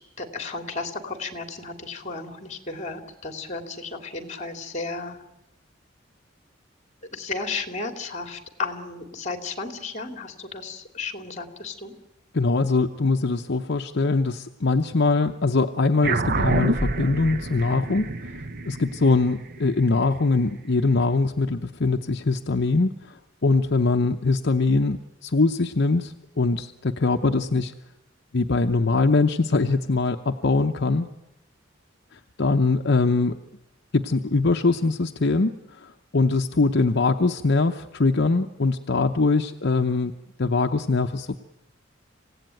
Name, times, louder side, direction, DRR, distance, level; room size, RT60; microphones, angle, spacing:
voice 1, 0.0-5.2 7.1-11.9, left 4 dB, 35° left, 6 dB, 2.6 m, -34 dB
voice 2, 12.3-18.1 18.7-23.2 23.4-27.7 28.3-31.1 32.1-33.4 33.9-41.4, left 3 dB, 60° left, 5 dB, 0.8 m, -22 dB
sound 1, 16.0-20.8, right 2 dB, 50° right, 1.0 m, -28 dB
27.0 x 16.5 x 9.2 m, 0.95 s
head